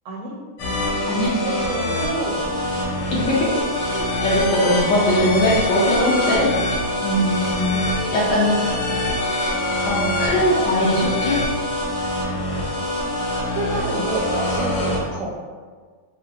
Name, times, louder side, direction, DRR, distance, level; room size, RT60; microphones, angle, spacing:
sound 1, 0.6-15.0, left 1 dB, 90° left, 1.7 m, -24 dB
voice 1, 1.4-2.7 3.2-3.4 7.6-7.8 13.6-15.3, right 2 dB, 80° right, -2 dB, 1.5 m, -28 dB
voice 2, 3.1-3.6 3.9-6.5 7.0-7.7 8.1-8.5 9.8-11.4, left 1 dB, 70° left, -5 dB, 1.1 m, -20 dB
5.0 x 2.0 x 2.3 m, 1.5 s
omnidirectional pair, 2.3 m